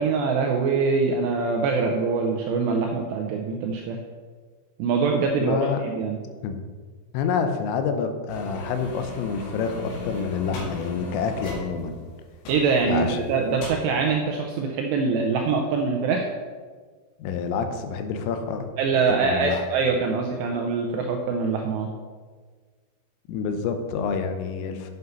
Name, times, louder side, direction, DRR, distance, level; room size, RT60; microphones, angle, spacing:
voice 1, 0.0-4.0 4.8-6.2 12.5-16.3 18.8-21.9, right 4 dB, 85° right, 2 dB, 2.5 m, -24 dB
voice 2, 5.4-5.8 6.4-6.6 7.1-12.0 12.9-13.2 17.2-18.7 19.1-19.6 23.3-24.9, left 6 dB, 90° left, 7 dB, 3.5 m, -28 dB
sound 1, 8.3-13.1 13.4-13.7, left 2 dB, 70° left, 4.1 m, -37 dB
8.1 x 8.0 x 5.4 m, 1.5 s
omnidirectional pair, 5.7 m